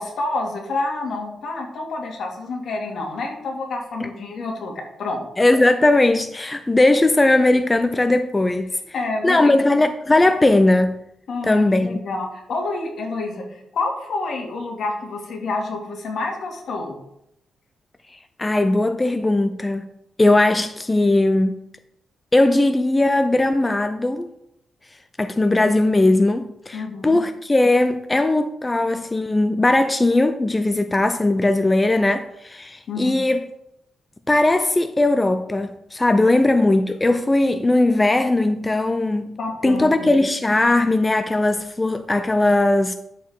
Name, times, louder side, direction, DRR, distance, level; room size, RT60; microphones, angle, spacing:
voice 1, 0.0-5.2 8.9-9.5 11.3-17.0 26.7-27.2 32.9-33.2 39.4-40.1, left 3 dB, 65° left, 2.3 m, -28 dB
voice 2, 5.4-8.7 9.2-10.9 11.4-12.0 18.1-19.9 20.2-21.6 22.3-24.3 25.2-33.5 34.3-39.4 39.6-42.9, left 2 dB, 15° left, 0.5 m, -18 dB
10.5 x 7.1 x 3.7 m
cardioid pair, 120°, 0 cm